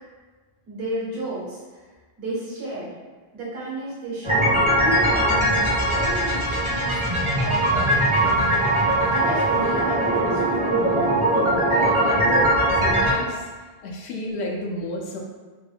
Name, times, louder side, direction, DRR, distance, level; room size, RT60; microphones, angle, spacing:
voice 1, 0.7-1.6 2.2-2.9 3.3-6.9 7.4-10.7, right 1 dB, 75° right, -6 dB, 1.3 m, -32 dB
sound 1, 4.2-13.1, right 1 dB, 35° right, 0.5 m, -20 dB
voice 2, 11.7-13.5 13.8-15.2, left 1 dB, 80° left, -1 dB, 0.9 m, -31 dB
3.2 x 2.3 x 3.3 m, 1.4 s
omnidirectional pair, 1.1 m